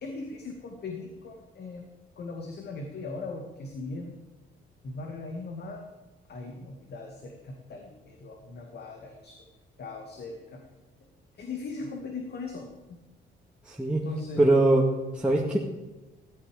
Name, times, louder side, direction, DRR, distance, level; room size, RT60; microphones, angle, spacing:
voice 1, 0.0-1.9 2.2-4.2 4.8-5.8 6.3-9.4 9.8-10.6 11.4-12.7 14.0-14.6, left 2 dB, 55° left, 2 dB, 2.2 m, -38 dB
voice 2, 13.7-14.0 14.4-14.9 15.1-15.6, right 2 dB, 5° right, -3 dB, 1.9 m, -22 dB
15.0 x 12.5 x 5.1 m, 1.1 s
cardioid pair, 90°, 20 cm